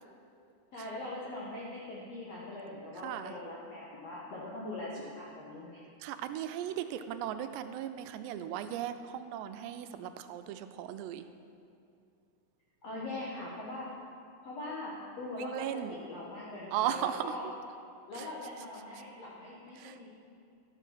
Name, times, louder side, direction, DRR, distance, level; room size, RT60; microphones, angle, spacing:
voice 1, 0.7-5.8 12.8-13.9 14.4-17.4 18.1-20.1, left 2 dB, 75° left, -5 dB, 1.5 m, -41 dB
voice 2, 3.0-3.3 6.0-11.3 15.4-15.9 16.7-17.4 18.2-18.3 19.8-20.0, right 11 dB, 90° right, 10 dB, 2.7 m, -37 dB
12.5 x 7.1 x 5.8 m, 2.4 s
omnidirectional pair, 4.8 m